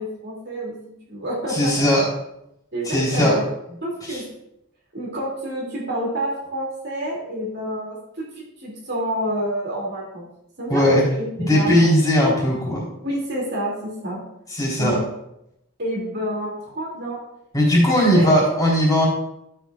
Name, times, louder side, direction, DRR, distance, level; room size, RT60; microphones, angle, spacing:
voice 1, 0.0-1.9 2.7-3.5 3.8-4.2 4.9-10.3 10.6-11.9 13.0-14.2 14.8-15.0 15.8-17.2 17.8-18.3, equal, 50° right, -3 dB, 2.4 m, -28 dB
voice 2, 1.5-2.1 2.8-3.4 4.1-4.2 10.7-11.0 11.4-12.9 14.5-15.0 17.5-19.1, equal, 15° left, -4 dB, 3.5 m, -18 dB
12.5 x 8.1 x 2.4 m, 0.81 s
head